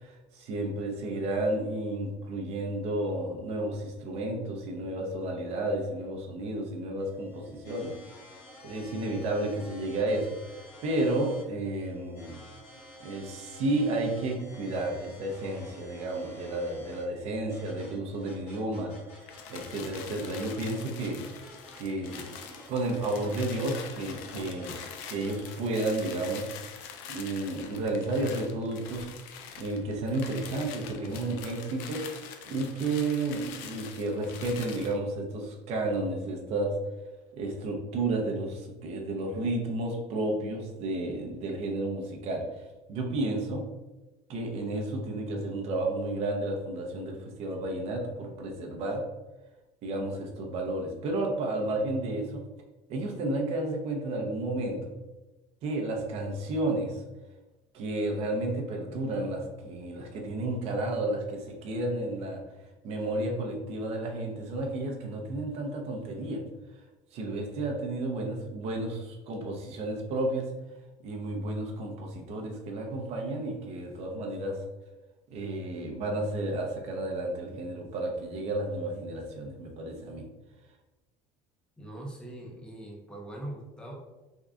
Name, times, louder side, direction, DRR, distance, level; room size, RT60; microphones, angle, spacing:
voice 1, 0.0-7.9 8.6-12.4 13.0-21.2 21.8-22.3 22.7-24.8 25.1-26.5 27.1-29.1 29.5-32.0 32.5-36.7 37.3-42.4 42.9-43.6 44.3-49.0 49.8-52.4 52.9-54.9 55.6-57.0 57.7-62.4 62.8-66.4 67.1-70.5 71.0-74.6 75.3-80.2, right 2 dB, 50° right, 1 dB, 0.6 m, -32 dB
sound 1, 7.0-25.5, left 1 dB, 60° left, 1.2 m, -51 dB
sound 2, 19.2-35.0, left 7 dB, 80° left, 0.5 m, -44 dB
voice 2, 81.8-83.9, right 1 dB, 5° left, -1 dB, 0.6 m, -41 dB
3.6 x 2.2 x 3.6 m, 1.1 s
cardioid pair, 170°, 15 cm